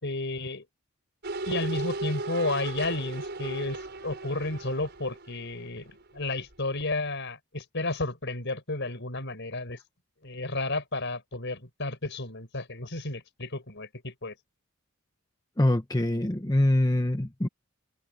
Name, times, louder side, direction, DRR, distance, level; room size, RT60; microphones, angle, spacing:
voice 1, 0.0-0.6 1.5-9.8 10.2-14.3, left 2 dB, 55° left, 5.1 m, -32 dB
sound 1, 1.2-6.2 6.5-6.6, right 2 dB, 50° right, 6.1 m, -36 dB
voice 2, 15.6-17.5, left 1 dB, 15° left, 1.0 m, -24 dB
head